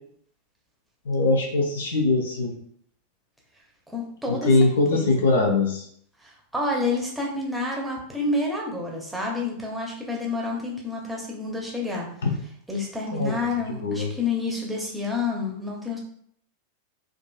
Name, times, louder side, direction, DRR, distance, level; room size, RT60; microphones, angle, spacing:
voice 1, 1.1-2.6 4.3-5.8 12.2-12.3 13.1-13.3 13.7-14.1, left 3 dB, 65° left, 3 dB, 0.5 m, -22 dB
voice 2, 3.9-5.2 6.2-12.1 12.7-16.0, left 3 dB, 5° right, -2 dB, 0.8 m, -29 dB
3.7 x 2.4 x 2.3 m, 0.64 s
figure-of-eight pair, 90°, 0 cm